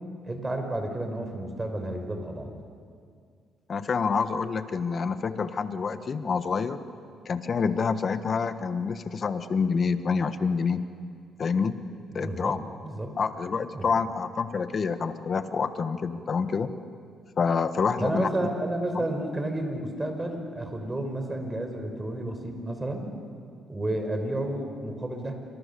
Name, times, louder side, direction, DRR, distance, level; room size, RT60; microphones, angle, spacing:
voice 1, 0.2-2.5 12.1-12.5 12.8-13.1 13.7-13.9 18.0-23.1 23.7-25.3, right 1 dB, 20° right, 4 dB, 4.9 m, -31 dB
voice 2, 3.7-6.8 7.2-10.8 11.4-11.8 12.1-12.6 13.2-16.7 17.4-18.3 18.9-19.1, left 5 dB, 45° left, 10 dB, 1.5 m, -27 dB
27.5 x 24.5 x 7.0 m, 2.2 s
cardioid pair, 90°, 0 cm